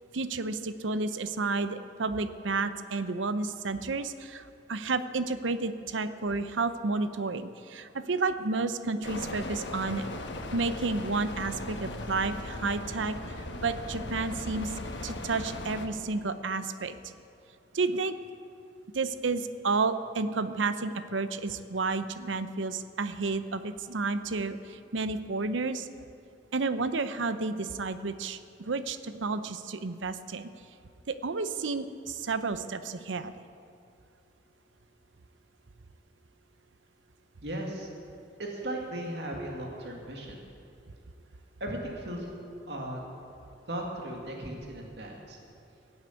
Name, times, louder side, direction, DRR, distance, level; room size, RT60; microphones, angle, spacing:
voice 1, 0.1-10.1 10.5-17.1 17.7-18.2 18.9-25.9 26.5-30.5 31.1-33.3, right 3 dB, 90° right, 12 dB, 0.7 m, -31 dB
sound 1, 9.0-15.9, left 1 dB, 75° left, 1.3 m, -38 dB
voice 2, 37.4-37.9 38.4-40.4 41.6-42.3 42.7-43.0 43.7-45.4, right 1 dB, 65° right, -1 dB, 2.2 m, -36 dB
17.0 x 8.1 x 8.2 m, 2.6 s
head